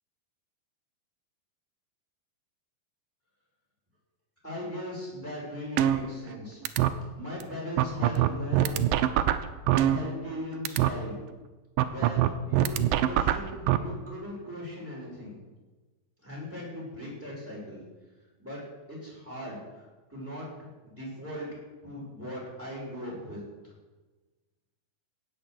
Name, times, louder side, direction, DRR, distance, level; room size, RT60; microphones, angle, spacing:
voice 1, 4.4-6.6 7.1-8.8 9.7-11.2 11.8-15.4 16.2-17.8 18.4-18.6 18.9-19.8 20.1-20.5 20.8-21.5 21.8-23.4, left 1 dB, 5° right, -5 dB, 5.9 m, -38 dB
sound 1, 5.8-6.4 6.7-6.9 7.4-7.5 7.8-10.4 10.7-10.9 11.8-13.8, right 13 dB, 85° right, 2.3 m, -23 dB
17.0 x 6.8 x 7.8 m, 1.2 s
omnidirectional pair, 4.2 m